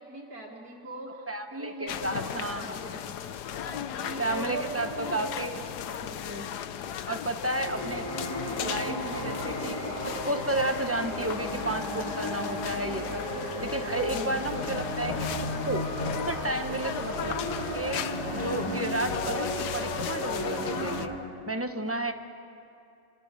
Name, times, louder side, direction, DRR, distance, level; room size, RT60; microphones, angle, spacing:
voice 1, 0.0-3.0 3.6-5.8 16.4-16.6 22.0-22.1, right 2 dB, 65° right, -2 dB, 2.7 m, -40 dB
voice 2, 1.3-2.7 4.2-5.5 6.0-6.5 7.1-8.0 8.6-9.8 10.0-13.3 13.6-15.9 16.2-18.0 18.3-21.1 21.5-22.1, right 1 dB, 10° right, 6 dB, 1.0 m, -32 dB
sound 1, 1.9-21.1, left 9 dB, 85° left, 1.4 m, -36 dB
sound 2, 7.4-21.0, equal, 45° left, 7.1 m, -34 dB
26.5 x 26.5 x 6.9 m, 2.6 s
omnidirectional pair, 1.7 m